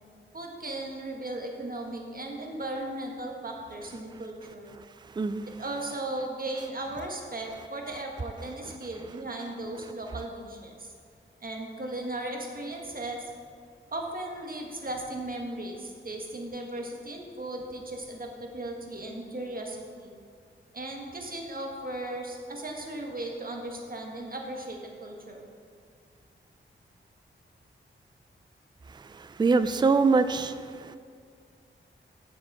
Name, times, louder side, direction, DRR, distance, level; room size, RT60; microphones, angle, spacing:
voice 1, 0.3-4.7 5.6-10.9 11.4-13.2 13.9-20.1 20.7-25.5, right 1 dB, 45° right, 1 dB, 1.5 m, -36 dB
voice 2, 29.2-30.5 30.8-31.0, right 4 dB, 20° right, 12 dB, 0.4 m, -23 dB
7.5 x 7.0 x 4.7 m, 2.2 s
cardioid pair, 50°, 21 cm